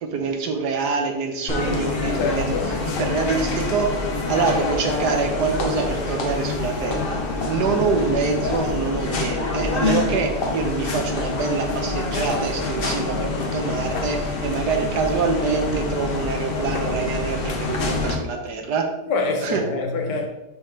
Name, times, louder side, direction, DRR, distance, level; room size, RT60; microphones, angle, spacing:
voice 1, 0.0-2.5 3.0-3.9 4.3-7.2 7.5-18.9 19.4-19.6, right 4 dB, 75° right, 1.4 m, -25 dB
sound 1, 1.5-18.2, left 3 dB, 45° left, 0.8 m, -26 dB
voice 2, 2.2-2.8 19.1-20.3, left 3 dB, 90° left, 1.5 m, -25 dB
5.6 x 5.3 x 3.3 m
omnidirectional pair, 1.7 m